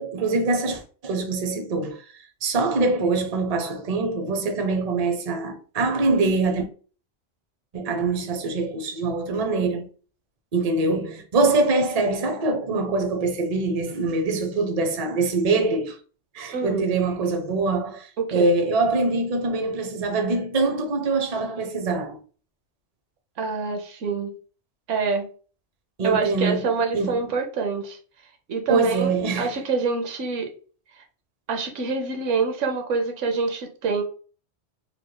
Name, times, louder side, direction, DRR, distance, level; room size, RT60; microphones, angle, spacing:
voice 1, 0.0-6.7 7.7-9.9 10.5-16.0 16.3-22.2 26.0-26.6 26.9-27.3 28.7-29.6, right 3 dB, 40° right, 0.6 m, -24 dB
voice 2, 16.5-16.8 18.2-18.5 23.4-24.3 24.9-25.3 26.0-28.0 28.5-30.5 31.5-34.0, right 4 dB, 90° right, 1.1 m, -26 dB
3.2 x 3.2 x 2.2 m
omnidirectional pair, 1.2 m